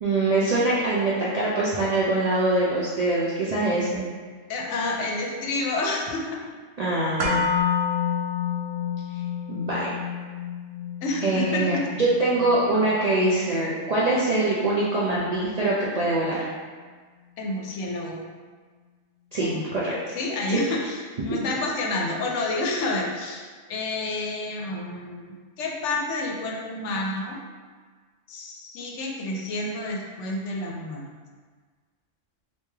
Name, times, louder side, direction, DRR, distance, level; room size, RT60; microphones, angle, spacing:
voice 1, 0.0-4.0 6.8-7.4 9.5-10.0 11.2-16.4 19.3-19.5 19.7-19.9 20.5-20.6, right 2 dB, 60° right, -7 dB, 0.4 m, -23 dB
voice 2, 4.5-6.4 11.0-11.9 17.4-18.2 19.4-19.6 20.1-27.4 28.3-31.0, left 2 dB, 70° left, -1 dB, 0.9 m, -29 dB
sound 1, 7.2-15.3 15.6-15.7, left 6 dB, 90° right, 1.0 m, -30 dB
3.1 x 2.7 x 3.3 m, 1.5 s
omnidirectional pair, 1.3 m